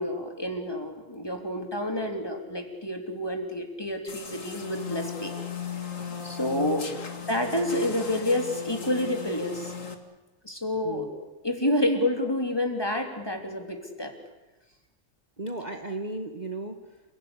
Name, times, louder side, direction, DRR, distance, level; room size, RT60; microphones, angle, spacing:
voice 1, 0.0-5.3 6.2-6.9 7.3-9.7 10.4-11.1 11.4-14.1, left 1 dB, 20° left, 4 dB, 3.4 m, -29 dB
sound 1, 4.1-9.9, left 6 dB, 75° left, 2.6 m, -37 dB
voice 2, 6.6-7.0 10.8-11.1 15.4-17.0, right 2 dB, 35° right, 5 dB, 1.6 m, -36 dB
29.5 x 17.5 x 9.9 m, 1.1 s
omnidirectional pair, 1.4 m